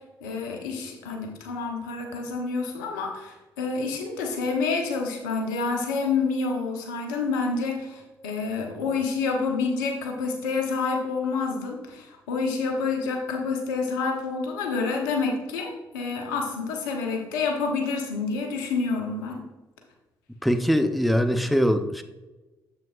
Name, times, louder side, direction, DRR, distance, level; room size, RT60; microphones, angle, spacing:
voice 1, 0.2-19.4, left 4 dB, 85° left, 2 dB, 1.0 m, -28 dB
voice 2, 20.4-22.0, equal, ahead, 8 dB, 0.7 m, -22 dB
7.6 x 7.3 x 2.5 m, 1.1 s
hypercardioid pair, 45°, 10 cm